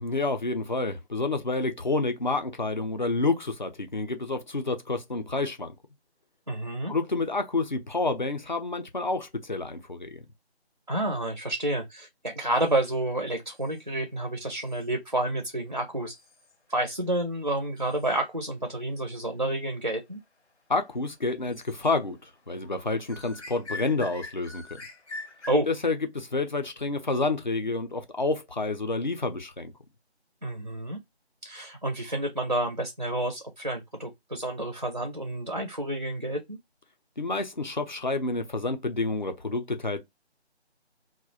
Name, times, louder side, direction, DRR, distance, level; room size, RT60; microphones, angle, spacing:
voice 1, 0.0-5.7 6.9-10.2 20.7-22.2 22.5-24.8 25.7-29.7 37.2-40.0, left 3 dB, 45° left, 0.4 m, -29 dB
voice 2, 6.5-6.9 10.9-16.1 16.7-20.2 25.5-25.7 30.4-31.0 31.4-36.6, right 1 dB, 40° right, 0.4 m, -29 dB
sound 1, 12.5-13.0 13.5-13.8 14.5-14.9 16.1-16.5 17.8-18.2 21.5-21.9 22.2-22.3 22.5-25.5, left 2 dB, 90° left, 0.8 m, -44 dB
2.4 x 2.1 x 3.9 m
figure-of-eight pair, 160°, 33 cm